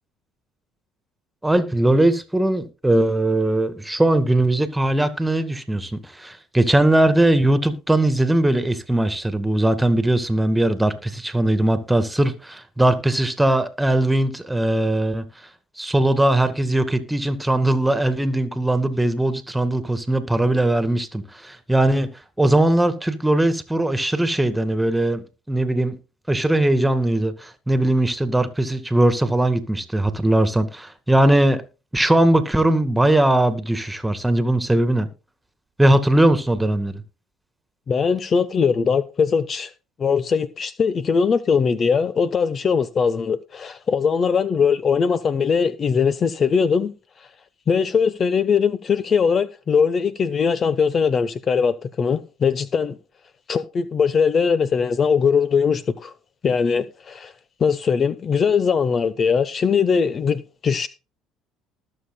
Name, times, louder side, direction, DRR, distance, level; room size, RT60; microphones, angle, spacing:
voice 1, 1.4-15.3 15.8-22.1 22.4-26.0 26.3-31.6 31.9-35.1 35.8-37.0, right 1 dB, 10° right, 2.0 m, -20 dB
voice 2, 37.9-39.7 40.0-46.9 47.7-53.0 53.5-56.1 56.4-57.3 57.6-60.9, left 6 dB, 40° left, 0.8 m, -20 dB
20.0 x 6.9 x 2.2 m
hypercardioid pair, 70°, 0 cm